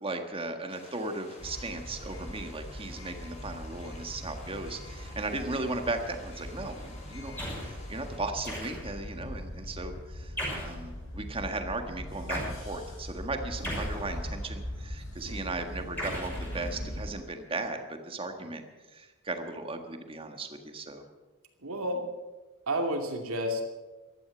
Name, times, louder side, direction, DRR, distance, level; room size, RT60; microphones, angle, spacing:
voice 1, 0.0-7.4 7.6-18.6 18.9-21.0, right 2 dB, 25° right, 6 dB, 1.6 m, -36 dB
sound 1, 0.7-8.2, left 2 dB, 30° left, 5.1 m, -52 dB
sound 2, 1.4-17.1, equal, 70° left, 5.8 m, -41 dB
voice 2, 5.3-5.7 15.2-15.5 21.6-22.0 22.7-23.6, equal, 85° right, 3 dB, 2.6 m, -32 dB
sound 3, 7.4-7.8 8.4-9.1 10.4-10.8 12.3-12.6 13.6-14.5 16.0-17.0, equal, 10° left, 6.4 m, -37 dB
15.5 x 12.5 x 7.2 m, 1.2 s
head